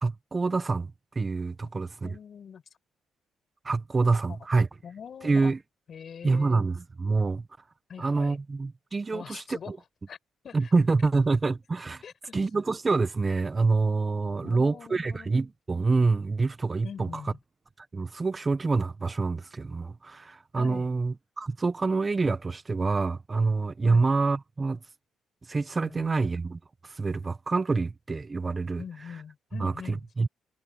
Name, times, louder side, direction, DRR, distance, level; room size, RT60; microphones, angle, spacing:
voice 1, 0.0-2.2 3.6-4.7 5.2-5.6 6.2-7.5 8.0-9.8 10.5-12.0 12.3-17.2 17.8-24.8 25.5-28.8 29.6-30.3, right 3 dB, 30° right, 1.3 m, -26 dB
voice 2, 2.0-2.6 4.0-4.4 4.8-5.5 5.9-6.6 7.9-8.4 9.1-9.7 10.1-10.2 10.4-10.7 12.0-12.1 14.4-15.4 16.8-17.4 20.6-20.9 23.8-24.1 25.8-26.2 28.8-30.0, left 7 dB, 55° left, 5.5 m, -43 dB
cardioid pair, 90°, 0 cm